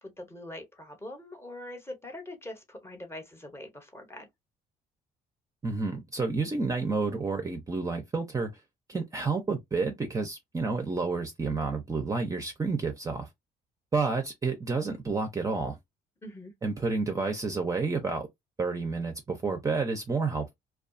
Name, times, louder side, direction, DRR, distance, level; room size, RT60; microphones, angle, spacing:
voice 1, 0.0-4.3 16.2-16.5, left 1 dB, 15° left, 0.8 m, -43 dB
voice 2, 5.6-8.5 8.9-13.3 13.9-15.8 16.6-18.3 18.6-20.5, right 4 dB, 20° right, 0.5 m, -30 dB
2.3 x 2.3 x 2.5 m
cardioid pair, 110°, 17 cm